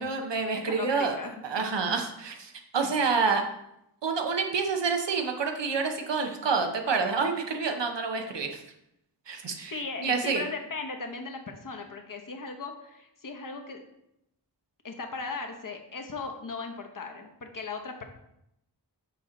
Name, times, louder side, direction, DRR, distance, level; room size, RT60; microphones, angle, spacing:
voice 1, 0.0-1.2 1.4-3.4 4.0-8.6 9.3-10.4, right 5 dB, 90° right, 4 dB, 0.8 m, -28 dB
voice 2, 0.5-1.4 2.8-2.9 9.7-13.8 14.8-18.0, left 4 dB, 50° left, 4 dB, 1.0 m, -37 dB
6.9 x 4.4 x 3.8 m, 0.82 s
wide cardioid pair, 80°, 42 cm